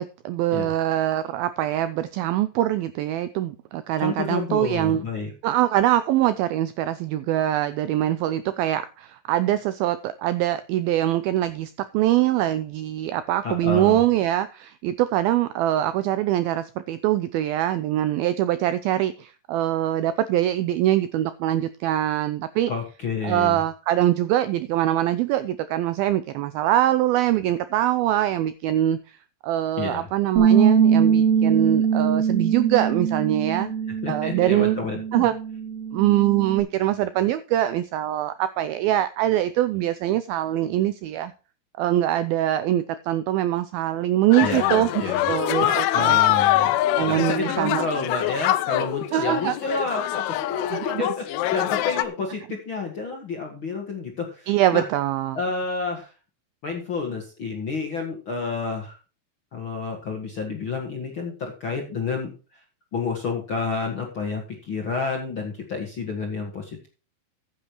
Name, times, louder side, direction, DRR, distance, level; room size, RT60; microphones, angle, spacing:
voice 1, 0.0-5.0 5.4-22.7 23.2-29.2 29.4-33.7 34.1-34.8 35.1-35.3 35.9-41.3 41.8-46.2 46.9-47.8 49.1-49.6 50.7-51.0 54.5-55.4, right 13 dB, 85° right, 2.1 m, -23 dB
voice 2, 4.0-5.3 13.4-14.0 22.7-23.6 29.8-30.1 34.0-35.3 44.4-45.3 45.6-46.7 47.1-54.8 55.3-56.1 56.6-58.9 59.5-62.6 62.9-66.9, left 4 dB, 55° left, 1.4 m, -30 dB
Bass guitar, 30.4-36.6, right 7 dB, 60° right, 3.5 m, -22 dB
sound 1, 44.3-52.1, left 14 dB, 80° left, 2.4 m, -24 dB
14.5 x 8.7 x 3.0 m
omnidirectional pair, 4.9 m